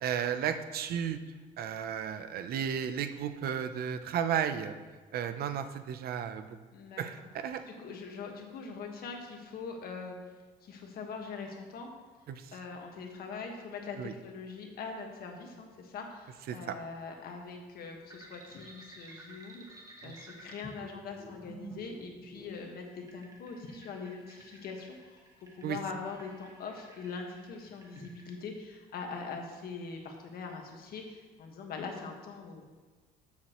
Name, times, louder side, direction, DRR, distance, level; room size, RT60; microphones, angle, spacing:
voice 1, 0.0-1.2 1.6-4.8 5.1-6.5 7.0-7.6 12.3-12.4 14.0-14.1 16.5-16.8 20.0-20.1 25.6-25.8, right 8 dB, 65° right, 9 dB, 0.7 m, -33 dB
voice 2, 6.7-7.0 7.7-10.2 10.6-11.9 12.5-19.6 20.0-25.2 25.6-32.6, left 4 dB, 65° left, 2 dB, 1.6 m, -42 dB
sound 1, 18.1-28.3, right 2 dB, 20° right, 1.8 m, -52 dB
13.0 x 7.3 x 3.1 m, 1.3 s
cardioid pair, 110°, 17 cm